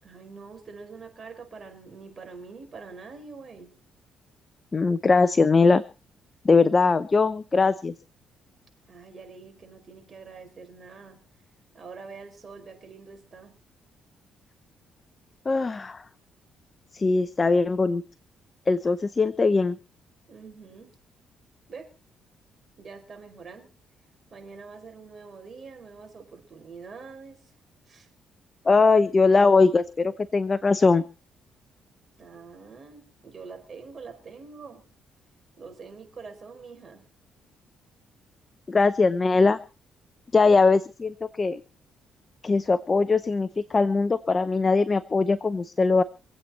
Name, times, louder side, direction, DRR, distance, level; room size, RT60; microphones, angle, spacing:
voice 1, 0.0-3.7 8.9-11.2 11.7-13.5 20.3-20.9 21.7-21.9 22.8-23.7 24.3-27.5 27.9-28.1 32.2-34.8 35.6-37.0, right 4 dB, 40° right, 4 dB, 4.9 m, -45 dB
voice 2, 4.7-5.8 6.4-7.9 15.5-16.0 16.9-18.0 18.7-19.8 28.7-31.0 38.7-39.6 40.3-41.6 42.4-46.0, left 4 dB, 30° left, 14 dB, 0.7 m, -21 dB
26.0 x 8.7 x 4.3 m, 0.32 s
cardioid pair, 90°, 0 cm